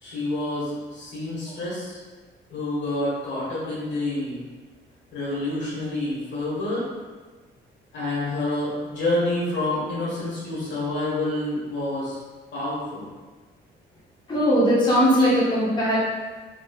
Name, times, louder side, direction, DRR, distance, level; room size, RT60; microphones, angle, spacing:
voice 1, 0.0-2.0 2.5-4.4 5.1-6.8 7.9-12.2 12.5-13.0, left 2 dB, 65° left, -7 dB, 1.4 m, -28 dB
voice 2, 14.3-16.0, equal, 20° left, -8 dB, 1.0 m, -19 dB
3.2 x 3.1 x 2.3 m, 1.3 s
cardioid pair, 90°, 20 cm